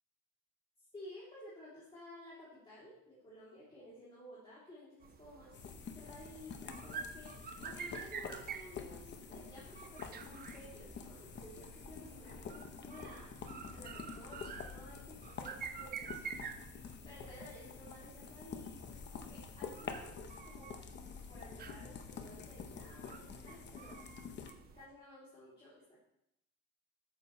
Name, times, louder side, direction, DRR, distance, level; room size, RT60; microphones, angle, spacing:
voice 1, 0.9-5.6 5.9-13.3 13.7-16.2 17.0-20.7 21.3-23.9 24.7-25.7, left 1 dB, 15° left, -8 dB, 3.4 m, -54 dB
sound 1, 5.0-24.9, right 6 dB, 30° right, 0.6 m, -50 dB
sound 2, 5.5-24.5, left 6 dB, 35° left, 1.0 m, -48 dB
12.5 x 9.3 x 3.3 m, 0.80 s
cardioid pair, 165°, 32 cm